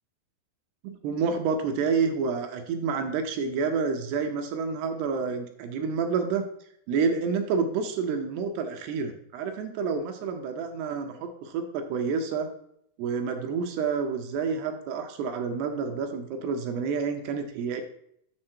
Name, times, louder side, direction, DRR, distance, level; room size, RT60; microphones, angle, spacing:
voice 1, 0.8-6.5 6.9-12.5 13.0-17.8, right 5 dB, 80° right, 6 dB, 2.5 m, -29 dB
7.6 x 6.6 x 4.4 m, 0.72 s
omnidirectional pair, 5.3 m